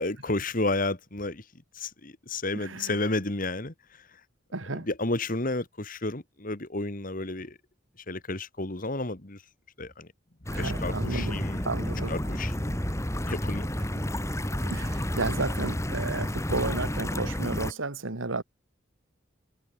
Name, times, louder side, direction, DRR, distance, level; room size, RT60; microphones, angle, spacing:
voice 1, 0.0-1.4 1.8-3.7 4.8-7.6 8.1-9.4 9.8-10.1 10.6-11.6 12.1-12.8 13.2-13.7, left 2 dB, 45° left, 2.2 m, -31 dB
voice 2, 2.5-3.0 4.5-4.9 10.5-12.2 14.6-18.4, right 3 dB, 90° right, 2.0 m, -33 dB
sound 1, 10.5-17.7, equal, 15° left, 3.0 m, -31 dB
head